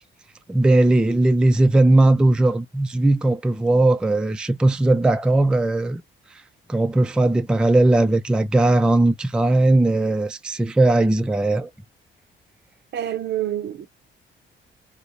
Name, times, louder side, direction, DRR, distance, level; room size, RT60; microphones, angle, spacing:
voice 1, 0.5-6.0 6.7-11.7, right 2 dB, 5° right, 0.3 m, -18 dB
voice 2, 12.9-13.9, right 11 dB, 60° right, 0.5 m, -27 dB
2.5 x 2.0 x 2.9 m
cardioid pair, 90°, 20 cm